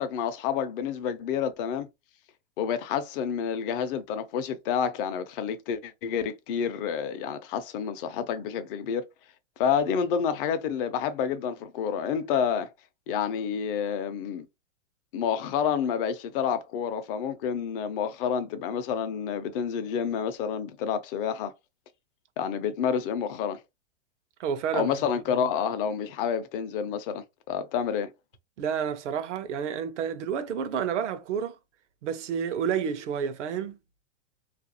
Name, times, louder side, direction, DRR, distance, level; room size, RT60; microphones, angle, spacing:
voice 1, 0.0-1.9 2.6-9.0 9.6-12.7 13.1-14.4 15.1-21.5 22.4-23.6 24.7-28.1, left 7 dB, 50° left, 0.6 m, -29 dB
voice 2, 24.4-24.9 25.3-25.4 28.6-31.6 32.0-33.8, right 7 dB, 80° right, 0.6 m, -30 dB
2.5 x 2.3 x 2.7 m
hypercardioid pair, 130°, 35 cm